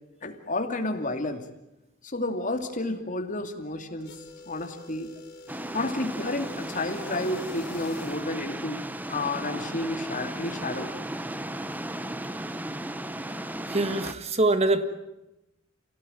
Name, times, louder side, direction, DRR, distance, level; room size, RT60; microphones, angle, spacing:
voice 1, 0.2-1.4 2.0-5.1 5.7-8.8 9.1-10.9, left 2 dB, 45° left, 6 dB, 2.6 m, -31 dB
sound 1, 4.0-8.4, left 2 dB, 60° left, 4.5 m, -46 dB
sound 2, 5.5-14.1, right 1 dB, 10° right, 0.9 m, -35 dB
voice 2, 13.7-14.8, right 2 dB, 35° right, 10 dB, 1.7 m, -24 dB
28.5 x 17.5 x 9.2 m, 0.95 s
head